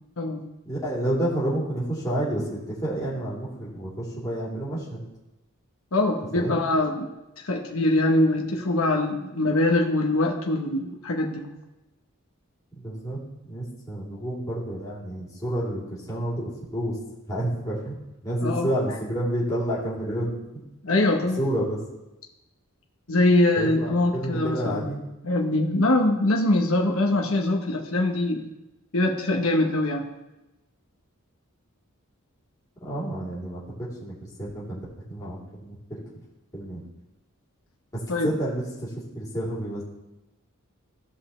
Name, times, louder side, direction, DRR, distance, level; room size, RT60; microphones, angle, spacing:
voice 1, 0.6-5.0 6.3-6.6 12.7-13.2 13.5-17.0 17.3-17.9 18.2-20.3 21.4-21.8 23.6-25.0 32.8-33.6 34.0-36.0 36.5-36.8 37.9-38.9 39.1-39.8, right 1 dB, 15° left, -8 dB, 3.1 m, -29 dB
voice 2, 5.9-7.1 7.4-11.5 18.4-18.7 20.8-21.4 23.1-24.9 25.2-28.4 28.9-30.0 38.1-38.3, left 2 dB, 65° left, 2 dB, 1.0 m, -23 dB
16.0 x 5.4 x 3.2 m, 0.97 s
head